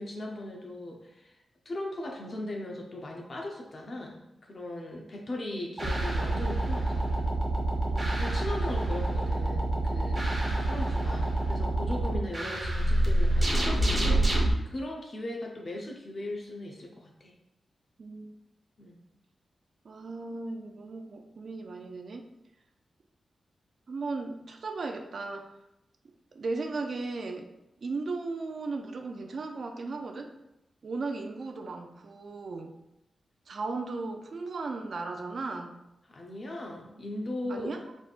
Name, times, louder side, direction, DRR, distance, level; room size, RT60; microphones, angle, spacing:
voice 1, 0.0-1.3 1.6-7.2 8.2-10.3 10.7-17.3 18.8-19.0 36.1-37.7, left 1 dB, 45° left, 0 dB, 0.8 m, -38 dB
sound 1, 5.8-14.5, right 1 dB, 30° right, 0.9 m, -27 dB
voice 2, 7.9-8.2 10.4-10.9 18.0-18.3 19.8-22.2 23.9-25.5 26.3-27.5 27.8-30.3 30.8-32.8 33.5-35.7 37.5-37.8, right 3 dB, 60° right, 5 dB, 0.4 m, -36 dB
4.1 x 3.4 x 2.5 m, 0.85 s
cardioid pair, 85°, 0 cm